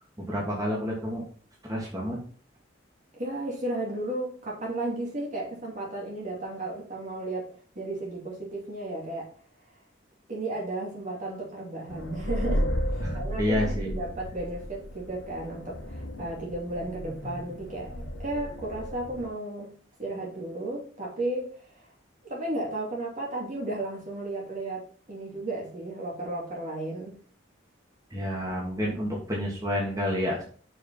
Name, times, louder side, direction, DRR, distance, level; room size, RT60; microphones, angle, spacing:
voice 1, 0.2-1.2 1.6-2.2 13.0-14.0 28.1-30.4, equal, 20° right, -4 dB, 2.4 m, -29 dB
voice 2, 3.1-9.3 10.3-19.7 20.0-21.8 22.2-27.2, right 2 dB, 45° right, -2 dB, 2.6 m, -34 dB
sound 1, 11.9-19.3, equal, 90° left, 1.3 m, -34 dB
6.6 x 5.3 x 5.5 m, 0.43 s
head